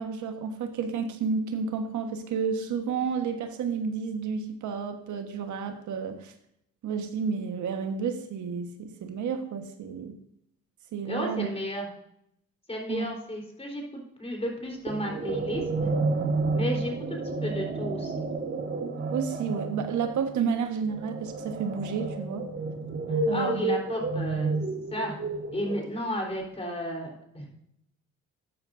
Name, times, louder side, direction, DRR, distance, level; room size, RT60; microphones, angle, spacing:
voice 1, 0.0-6.3 6.8-10.2 10.9-11.5 12.9-13.1 19.1-22.5 23.3-23.7, right 6 dB, 75° right, 6 dB, 1.4 m, -31 dB
voice 2, 11.1-11.9 12.7-15.9 16.5-18.2 23.1-24.5 24.9-25.2 25.5-27.5, equal, 20° left, 1 dB, 3.7 m, -33 dB
sound 1, 14.9-26.2, right 3 dB, 40° right, 1.7 m, -31 dB
12.5 x 9.1 x 2.6 m, 0.75 s
cardioid pair, 90°, 30 cm